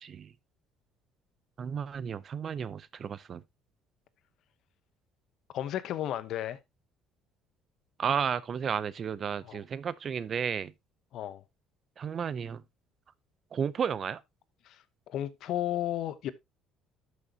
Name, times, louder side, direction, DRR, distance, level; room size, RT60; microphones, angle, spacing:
voice 1, 0.0-0.3 1.6-3.4 8.0-10.7 12.0-12.6 13.5-14.2, right 7 dB, 35° right, 0.5 m, -33 dB
voice 2, 5.5-6.6 9.4-9.6 11.1-11.4 14.6-14.8 15.1-16.3, left 12 dB, 60° left, 0.9 m, -33 dB
12.0 x 6.4 x 2.8 m
cardioid pair, 130°, 0 cm